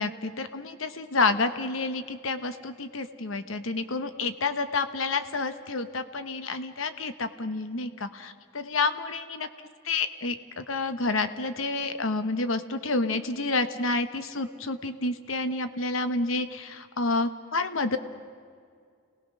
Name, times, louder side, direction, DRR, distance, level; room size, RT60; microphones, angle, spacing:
voice 1, 0.0-9.5 9.8-18.0, left 3 dB, 75° left, 10 dB, 1.0 m, -29 dB
29.0 x 19.0 x 6.2 m, 2.2 s
head